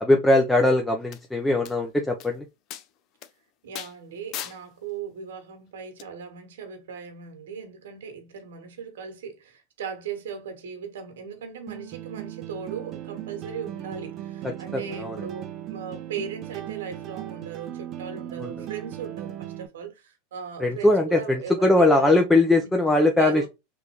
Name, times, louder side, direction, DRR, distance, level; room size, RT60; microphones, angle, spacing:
voice 1, 0.0-2.4 14.7-15.2 18.4-18.7 20.6-23.5, left 2 dB, 5° left, 0.6 m, -20 dB
sound 1, 1.1-1.2 1.7-1.8 2.2-2.3 2.7-2.9 3.2-3.3 3.8-3.9 4.3-4.6 6.0-6.1, left 11 dB, 50° left, 0.5 m, -36 dB
voice 2, 3.6-22.7 23.2-23.5, right 6 dB, 85° right, 1.2 m, -38 dB
sound 2, 11.7-19.7, right 12 dB, 40° right, 0.6 m, -37 dB
3.5 x 2.6 x 3.0 m
hypercardioid pair, 115°, 0 cm